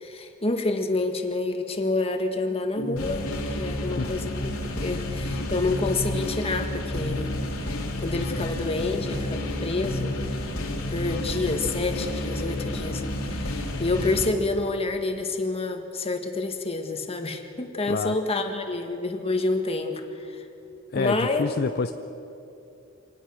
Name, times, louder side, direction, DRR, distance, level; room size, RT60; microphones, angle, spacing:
voice 1, 0.0-3.3 3.6-4.3 4.8-7.3 8.0-10.2 10.9-13.0 13.3-20.0 20.9-21.5, left 2 dB, 30° left, 5 dB, 1.7 m, -28 dB
sound 1, 2.8-14.3, left 1 dB, 80° left, 2.7 m, -30 dB
voice 2, 17.9-18.2 20.9-21.9, left 4 dB, 50° left, 10 dB, 0.5 m, -27 dB
25.5 x 18.5 x 6.3 m, 2.8 s
head